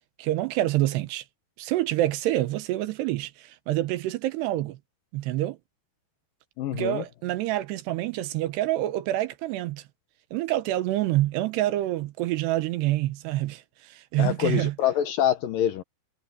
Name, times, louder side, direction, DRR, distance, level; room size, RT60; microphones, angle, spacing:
voice 1, 0.2-1.2 1.6-4.8 5.1-5.6 6.7-9.8 10.3-14.8, right 15 dB, 80° right, 3.0 m, -27 dB
voice 2, 6.6-7.0 14.2-15.8, left 10 dB, 70° left, 2.3 m, -25 dB
omnidirectional pair, 4.9 m